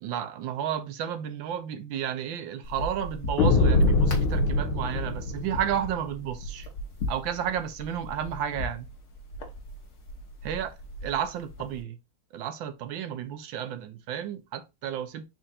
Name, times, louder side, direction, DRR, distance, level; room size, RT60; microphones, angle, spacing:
voice 1, 0.0-6.7 7.1-8.9 10.4-10.7 11.0-12.0 12.3-15.3, right 9 dB, 75° right, 1.3 m, -32 dB
sound 1, 2.6-11.8, left 1 dB, 45° left, 1.0 m, -38 dB
sound 2, 3.4-6.0, left 3 dB, 80° left, 1.6 m, -23 dB
4.4 x 2.4 x 4.1 m
omnidirectional pair, 2.2 m